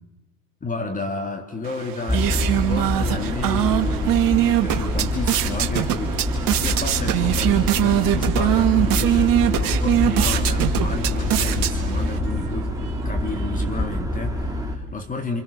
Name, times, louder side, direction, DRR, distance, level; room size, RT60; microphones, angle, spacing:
voice 1, 0.6-6.1 6.6-12.7 13.0-15.4, left 3 dB, 15° left, 4 dB, 3.1 m, -31 dB
sound 1, 1.6-12.2, right 12 dB, 45° right, 2.5 m, -22 dB
sound 2, 2.1-14.8, left 1 dB, 5° right, 3.5 m, -25 dB
Human voice / Bird, 6.4-14.0, right 12 dB, 70° right, 1.6 m, -39 dB
30.0 x 27.0 x 7.0 m, 0.99 s
hypercardioid pair, 85°, 47 cm